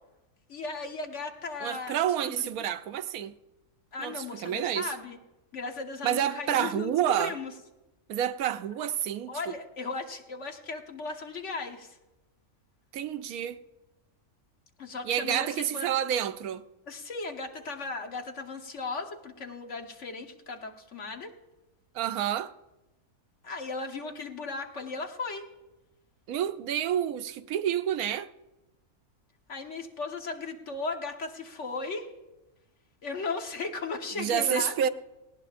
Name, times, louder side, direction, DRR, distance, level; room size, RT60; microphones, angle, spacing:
voice 1, 0.5-2.0 2.2-2.6 3.9-5.2 5.5-6.9 7.2-7.5 9.3-12.0 14.8-15.9 16.9-21.3 23.4-25.5 29.5-32.1 33.0-34.7, left 3 dB, 55° left, 1.5 m, -36 dB
voice 2, 1.6-3.3 4.0-4.9 6.0-7.3 8.1-9.3 12.9-13.6 15.0-16.6 21.9-22.5 26.3-28.3 34.2-34.9, right 10 dB, 80° right, 1.1 m, -29 dB
18.5 x 18.0 x 2.5 m
omnidirectional pair, 1.5 m